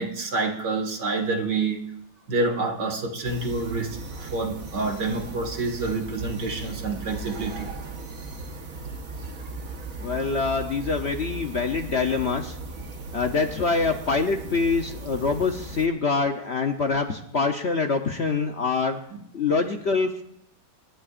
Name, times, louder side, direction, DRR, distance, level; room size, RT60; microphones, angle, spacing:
voice 1, 0.0-1.9 2.3-7.7 9.4-9.5 9.7-9.9 19.1-19.2, right 3 dB, 70° right, 3 dB, 2.5 m, -28 dB
sound 1, 3.2-15.9, right 3 dB, 55° right, 1.6 m, -37 dB
voice 2, 10.0-12.6 13.1-19.0 19.3-20.2, left 4 dB, 50° left, 4 dB, 0.8 m, -25 dB
27.5 x 11.5 x 2.5 m, 0.76 s
omnidirectional pair, 1.9 m